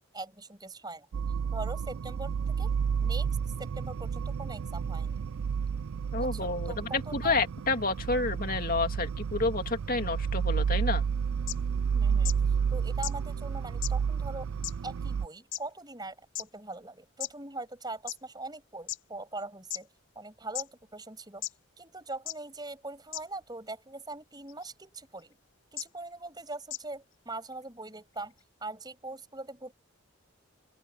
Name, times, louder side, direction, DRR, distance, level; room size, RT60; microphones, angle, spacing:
voice 1, 0.1-1.1 1.5-2.7 3.0-5.2 6.2-7.4 11.9-14.5 14.8-19.9 20.2-21.5 21.8-25.4 25.7-28.3 28.6-29.7, right 2 dB, 20° right, 7.2 m, -42 dB
sound 1, 1.1-15.3, right 6 dB, 85° right, 0.4 m, -31 dB
voice 2, 6.1-11.0, left 3 dB, 45° left, 2.6 m, -29 dB
sound 2, 11.5-11.6 12.2-12.3 13.0-13.1 13.8-13.9 14.6-14.7 15.5-15.6 16.4-16.5 17.2-17.3 18.1-18.2 18.9-19.0 19.7-19.8 20.6-20.7 21.4-21.5 22.3-22.4 23.1-23.2 24.5-24.6 25.8-25.9 26.7-26.8, left 15 dB, 75° left, 4.8 m, -34 dB
open air
head